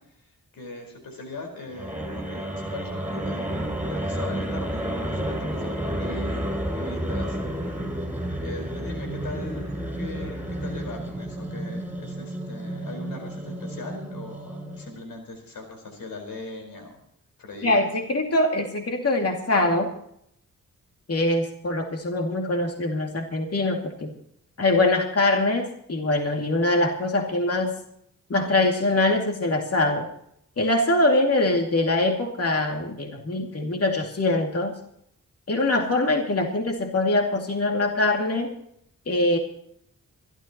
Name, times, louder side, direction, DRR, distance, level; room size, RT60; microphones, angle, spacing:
voice 1, 0.2-7.7 8.4-17.0 17.4-17.9, left 2 dB, 90° left, 3 dB, 4.8 m, -40 dB
sound 1, 1.7-15.0, right 1 dB, 5° right, 6.1 m, -31 dB
voice 2, 17.6-19.9 21.1-24.1 24.6-27.7 28.3-30.1 30.6-34.7 35.5-38.5 39.1-39.4, left 2 dB, 45° left, 2 dB, 2.5 m, -23 dB
26.0 x 13.0 x 3.0 m, 0.72 s
cardioid pair, 55°, 33 cm